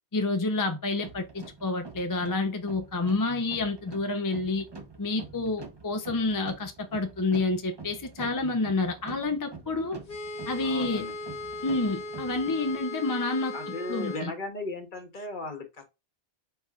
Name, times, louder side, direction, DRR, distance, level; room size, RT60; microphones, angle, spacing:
voice 1, 0.1-4.6 5.0-10.0 10.5-11.0 11.6-13.6 13.9-14.3, left 3 dB, 25° left, 0.5 m, -29 dB
sound 1, 1.0-12.8, right 4 dB, 30° right, 0.7 m, -46 dB
sound 2, 10.1-14.3, left 2 dB, 85° left, 1.4 m, -38 dB
voice 2, 10.6-11.1 13.5-15.8, left 2 dB, 50° left, 1.1 m, -36 dB
4.5 x 4.3 x 2.3 m
omnidirectional pair, 1.1 m